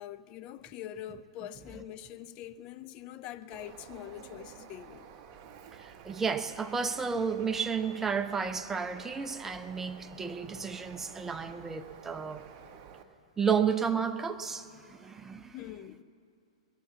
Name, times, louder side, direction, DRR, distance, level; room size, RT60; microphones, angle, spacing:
voice 1, 0.0-5.1 15.5-16.0, left 11 dB, 35° left, 0.6 m, -44 dB
Bird, 3.5-13.0, right 7 dB, 35° right, 0.9 m, -51 dB
voice 2, 5.8-12.4 13.4-15.6, right 6 dB, 10° right, 0.7 m, -32 dB
21.0 x 7.2 x 8.2 m
figure-of-eight pair, 105°, 3 cm